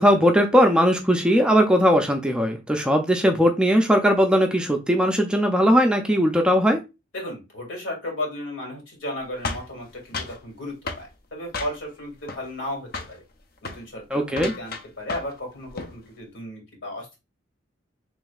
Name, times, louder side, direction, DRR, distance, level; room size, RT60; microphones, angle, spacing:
voice 1, 0.0-6.8 14.1-14.5, equal, 5° right, 3 dB, 0.4 m, -19 dB
voice 2, 7.1-13.2 13.6-17.2, left 1 dB, 75° left, 0 dB, 2.1 m, -34 dB
sound 1, 9.4-10.4 10.9-11.1 11.5-12.0 12.3-12.7 12.9-13.2 13.6-13.8 14.3-15.4 15.6-16.0, left 3 dB, 50° left, 0.6 m, -33 dB
5.2 x 3.1 x 2.3 m, 0.26 s
head